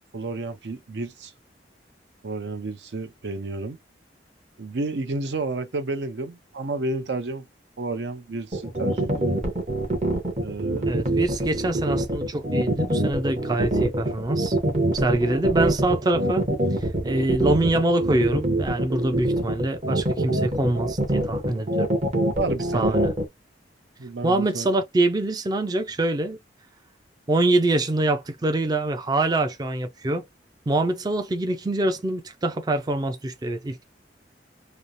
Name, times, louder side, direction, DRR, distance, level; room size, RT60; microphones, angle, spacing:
voice 1, 0.1-1.3 2.2-3.8 4.6-7.5 7.8-9.4 10.4-11.0 22.4-23.0 24.0-24.7, right 3 dB, 75° right, 0.6 m, -31 dB
sound 1, 8.5-23.2, right 1 dB, 40° right, 0.9 m, -24 dB
voice 2, 10.9-14.6 14.9-16.5 16.8-21.9 22.7-23.1 24.2-26.4 27.3-30.2 30.7-33.8, right 2 dB, 20° right, 0.3 m, -24 dB
3.1 x 2.0 x 2.5 m
head